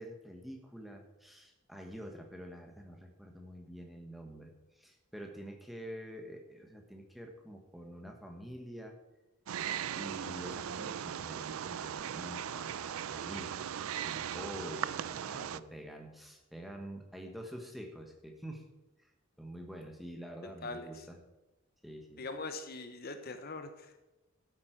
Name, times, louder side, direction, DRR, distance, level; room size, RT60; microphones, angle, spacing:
voice 1, 0.0-8.9 10.0-13.6 14.0-18.7 19.0-19.1 19.4-21.2 21.8-22.2, equal, ahead, 2 dB, 1.3 m, -47 dB
Wild animals, 9.5-15.6, right 9 dB, 90° right, 0.4 m, -38 dB
voice 2, 20.6-21.0 22.2-23.9, left 3 dB, 45° left, 8 dB, 0.8 m, -42 dB
12.5 x 8.6 x 4.6 m, 1.0 s
head